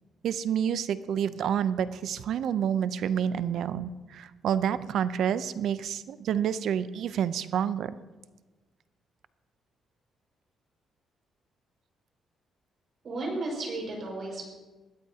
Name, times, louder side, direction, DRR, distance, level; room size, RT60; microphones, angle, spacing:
voice 1, 0.2-7.9, right 8 dB, 75° right, 14 dB, 0.6 m, -28 dB
voice 2, 13.0-14.5, right 2 dB, 55° right, 0 dB, 5.6 m, -34 dB
20.0 x 14.0 x 2.9 m, 1.2 s
cardioid pair, 90°, 0 cm